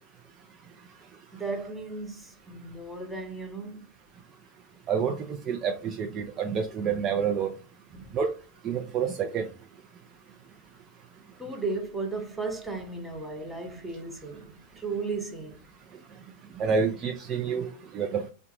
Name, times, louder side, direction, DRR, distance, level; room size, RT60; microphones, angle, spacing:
voice 1, 1.3-3.9 7.9-8.2 11.4-15.6, right 3 dB, 5° right, 0.8 m, -35 dB
voice 2, 4.9-5.2 5.5-7.5 8.1-8.3 8.6-9.5 16.6-17.7 17.9-18.2, right 6 dB, 30° right, 0.4 m, -28 dB
3.7 x 2.2 x 2.9 m
figure-of-eight pair, 90°, 0 cm